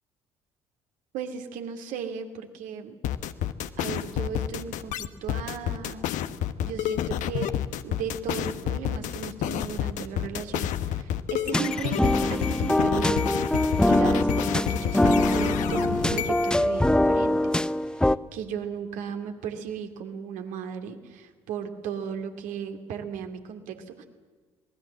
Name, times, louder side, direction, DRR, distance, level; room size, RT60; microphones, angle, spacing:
voice 1, 1.1-3.0 3.8-6.1 6.6-7.6 7.8-24.0, right 7 dB, 65° right, 6 dB, 2.7 m, -36 dB
sound 1, 3.0-16.6, left 11 dB, 60° left, 1.2 m, -29 dB
sound 2, 11.5-18.2, left 1 dB, 5° left, 0.7 m, -23 dB
27.0 x 20.0 x 7.5 m, 1.4 s
hypercardioid pair, 55°, 14 cm